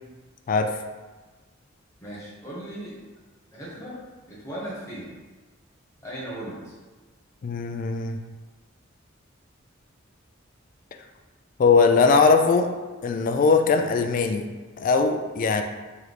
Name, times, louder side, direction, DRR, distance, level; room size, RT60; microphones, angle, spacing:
voice 1, 2.0-3.0 3.5-5.1 6.0-6.8, right 1 dB, 15° left, -8 dB, 1.3 m, -37 dB
voice 2, 7.4-8.2 11.6-12.7 13.0-14.4 14.8-15.6, left 4 dB, 45° left, 6 dB, 0.3 m, -20 dB
3.3 x 3.0 x 3.9 m, 1.3 s
head